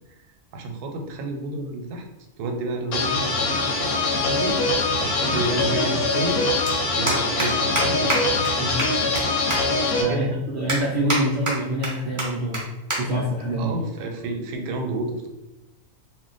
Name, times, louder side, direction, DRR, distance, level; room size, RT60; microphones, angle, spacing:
voice 1, 0.5-2.1 2.4-6.5 6.9-8.6 10.1-10.4 13.6-15.3, right 2 dB, 90° right, 3 dB, 1.1 m, -30 dB
sound 1, 2.9-10.0, left 3 dB, 75° left, 1.0 m, -23 dB
sound 2, 6.7-6.8 7.1-7.5 7.8-7.9 8.1-8.2 8.4-8.5 8.8-9.2 9.5-9.6 10.1-10.2 10.7-11.2 11.5-11.9 12.2-12.3 12.5-12.6 12.9-13.0 13.3-13.5 14.3-14.6, right 2 dB, 25° right, 0.4 m, -25 dB
voice 2, 10.0-12.6 13.0-13.7, equal, 70° right, -4 dB, 0.6 m, -25 dB
2.4 x 2.1 x 3.8 m, 0.99 s
omnidirectional pair, 1.6 m